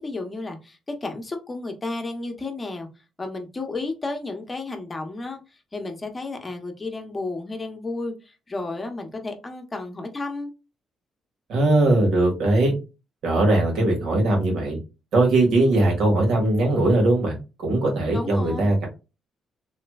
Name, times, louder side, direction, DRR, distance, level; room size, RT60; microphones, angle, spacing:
voice 1, 0.0-2.9 3.2-10.5 18.1-18.7, left 3 dB, 25° left, 0.8 m, -32 dB
voice 2, 11.5-12.7 13.2-14.8 15.1-18.9, right 2 dB, 80° right, 1.6 m, -20 dB
3.2 x 3.0 x 2.2 m
cardioid pair, 90°, 0 cm